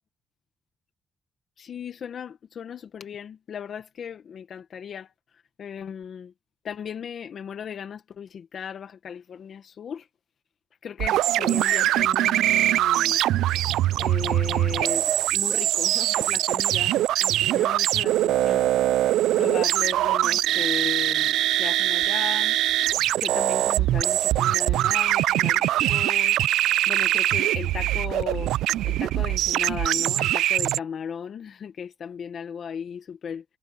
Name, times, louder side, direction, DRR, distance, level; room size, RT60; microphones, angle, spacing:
voice 1, 1.6-5.1 5.6-6.3 6.6-10.1 10.8-13.2 14.0-15.1 15.3-18.7 19.3-22.6 23.2-26.5 26.9-28.5 28.8-33.4, left 7 dB, 55° left, 1.2 m, -36 dB
sound 1, 11.0-30.8, right 14 dB, 85° right, 0.4 m, -23 dB
cardioid pair, 90°, 0 cm